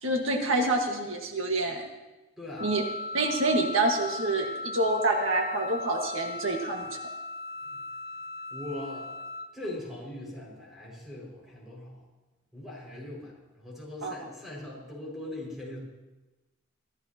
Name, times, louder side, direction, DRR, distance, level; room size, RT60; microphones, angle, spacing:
voice 1, 0.0-1.8 2.6-2.8 3.1-6.9 14.0-14.1, right 2 dB, 80° right, 1 dB, 1.9 m, -27 dB
voice 2, 2.4-2.7 7.6-7.8 8.5-9.1 9.5-11.9 12.5-13.3 13.6-15.8, left 1 dB, ahead, -4 dB, 6.2 m, -40 dB
Wind instrument woodwind instrument, 2.6-9.5, left 2 dB, 55° left, 1.6 m, -38 dB
25.5 x 14.5 x 3.0 m, 1.1 s
head